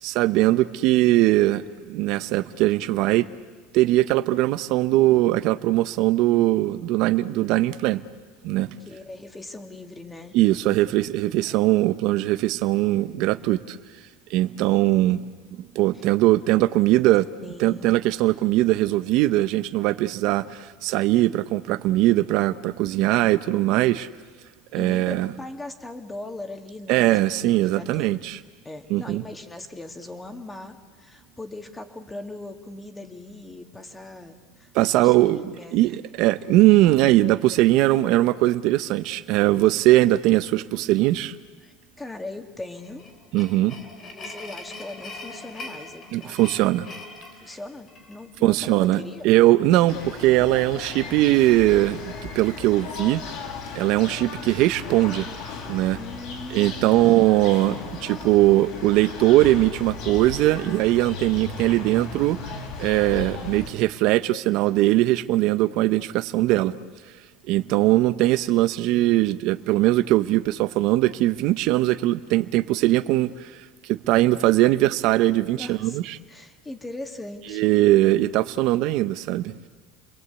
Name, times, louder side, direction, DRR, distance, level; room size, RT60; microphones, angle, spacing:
voice 1, 0.0-3.3 3.7-8.0 8.4-8.8 10.3-13.8 14.3-17.3 17.6-24.1 24.7-25.3 26.9-28.4 28.9-29.2 34.7-35.4 35.7-41.3 43.3-43.8 46.1-46.9 48.4-53.3 53.7-55.3 55.7-56.0 56.5-62.5 62.8-66.8 67.5-76.2 77.5-79.6, right 16 dB, 60° right, 0.9 m, -20 dB
voice 2, 8.8-10.3 11.4-11.8 15.9-16.1 17.4-17.9 24.7-28.2 28.6-36.0 41.6-43.0 44.1-46.4 47.4-49.3 56.0-57.0 75.6-76.0 76.3-77.6, left 2 dB, 10° left, 2.4 m, -39 dB
sound 1, 42.7-48.2, left 2 dB, 35° left, 4.1 m, -41 dB
sound 2, 49.9-63.7, left 4 dB, 60° left, 5.9 m, -36 dB
29.5 x 22.0 x 8.4 m
supercardioid pair, 130°, 0 cm